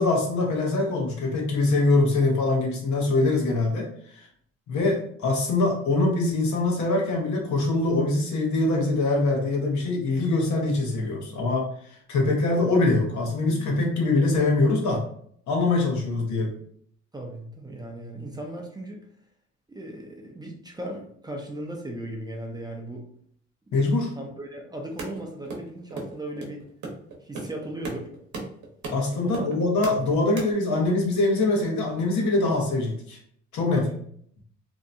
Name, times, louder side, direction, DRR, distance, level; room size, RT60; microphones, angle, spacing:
voice 1, 0.0-3.9 4.7-11.6 12.1-15.0 15.5-16.5 23.7-24.1 28.9-33.2 33.5-33.8, left 2 dB, 75° left, 0 dB, 0.9 m, -23 dB
voice 2, 17.1-19.0 19.7-23.1 23.7-26.6 27.2-28.1 29.2-29.5 33.7-34.0, right 1 dB, 15° right, 1 dB, 0.5 m, -37 dB
sound 1, 25.0-30.4, right 3 dB, 65° right, 0.8 m, -35 dB
2.7 x 2.1 x 2.5 m, 0.63 s
cardioid pair, 90°, 30 cm